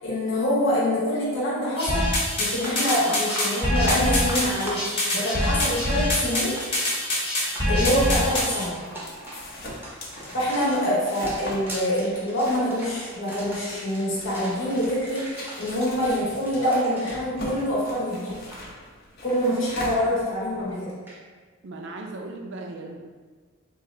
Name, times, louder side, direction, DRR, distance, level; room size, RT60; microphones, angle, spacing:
voice 1, 0.0-6.6 7.7-8.8 10.3-18.4 19.2-20.9, equal, 65° left, -7 dB, 0.9 m, -25 dB
sound 1, 1.8-8.7, left 1 dB, 25° left, 0.9 m, -25 dB
sound 2, 2.0-2.1 2.4-18.1 18.3-18.6 21.1-21.2, right 1 dB, 10° right, 0.6 m, -39 dB
sound 3, 8.6-20.7, left 1 dB, 45° left, 0.6 m, -41 dB
voice 2, 21.6-23.0, right 2 dB, 55° right, 2 dB, 0.4 m, -37 dB
3.8 x 2.5 x 3.1 m, 1.5 s
head